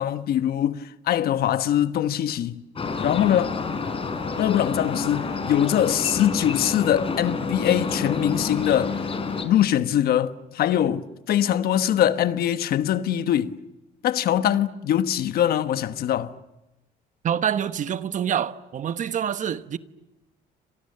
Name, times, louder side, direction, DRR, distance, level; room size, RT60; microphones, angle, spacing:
voice 1, 0.0-2.6 3.0-3.6 4.4-9.0 9.4-13.6 14.0-16.3, left 11 dB, 65° left, 1.2 m, -23 dB
sound 1, 2.7-9.4, left 4 dB, 35° left, 4.7 m, -29 dB
voice 2, 17.2-19.8, right 9 dB, 50° right, 1.1 m, -26 dB
29.5 x 27.0 x 6.7 m
cardioid pair, 110°, 17 cm